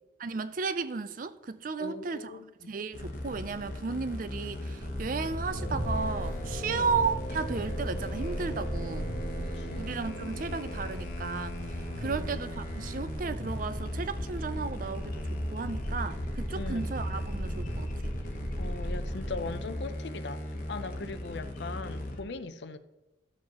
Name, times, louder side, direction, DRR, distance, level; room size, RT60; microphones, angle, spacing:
voice 1, 0.2-2.4 2.7-9.1 9.5-18.1 21.0-21.1, right 4 dB, 45° right, 0.4 m, -34 dB
voice 2, 1.8-2.7 6.7-6.9 9.4-10.0 12.0-12.3 16.5-16.9 18.6-22.8, left 3 dB, 65° left, 0.6 m, -40 dB
sound 1, 2.9-22.2, left 1 dB, 45° left, 1.0 m, -39 dB
sound 2, 4.8-19.5, equal, 60° right, 2.3 m, -37 dB
Brass instrument, 5.5-11.1, right 1 dB, 85° left, 1.5 m, -43 dB
13.0 x 7.4 x 3.0 m
head